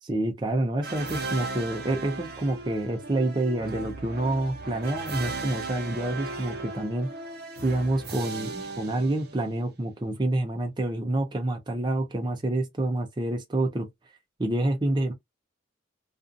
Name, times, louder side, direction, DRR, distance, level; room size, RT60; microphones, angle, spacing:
voice 1, 0.0-7.1 7.6-13.9 14.4-15.1, right 1 dB, 20° right, 0.5 m, -28 dB
sound 1, 0.8-9.7, right 3 dB, 50° right, 0.8 m, -37 dB
2.5 x 2.4 x 2.5 m
head